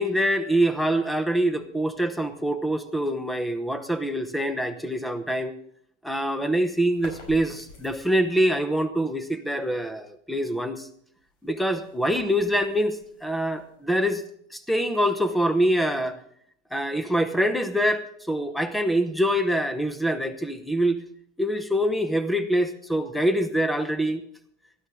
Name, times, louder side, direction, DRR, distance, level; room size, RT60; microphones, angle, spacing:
voice 1, 0.0-5.5 6.0-10.9 11.4-14.2 14.5-16.2 16.7-21.0 21.4-24.2, equal, ahead, 10 dB, 0.9 m, -25 dB
sound 1, 6.8-8.4 11.1-14.1, left 3 dB, 80° left, 5.5 m, -48 dB
18.0 x 13.0 x 3.8 m, 0.64 s
supercardioid pair, 135°, 36 cm